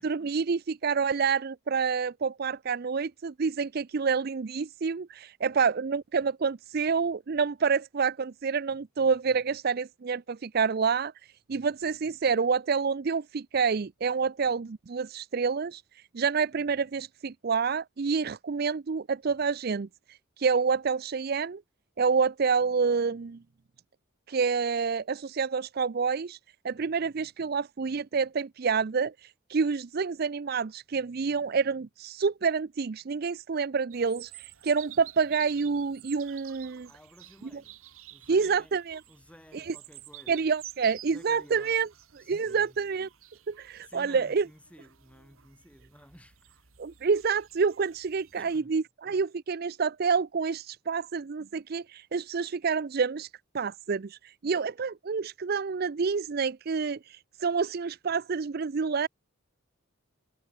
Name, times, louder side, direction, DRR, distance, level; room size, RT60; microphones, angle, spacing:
voice 1, 0.0-11.1 11.5-15.8 16.1-19.9 20.4-21.6 22.0-23.4 24.3-26.4 26.6-36.9 38.3-39.0 39.5-39.7 40.3-41.9 42.3-43.1 43.5-44.4 46.8-53.3 53.5-59.1, right 5 dB, 45° right, 0.5 m, -28 dB
sound 1, 33.9-48.6, right 14 dB, 85° right, 2.0 m, -50 dB
voice 2, 36.8-37.8 38.1-38.8 39.1-40.5 41.0-41.9 42.2-42.9 43.8-46.7 48.4-48.8, equal, 5° left, 7.2 m, -54 dB
head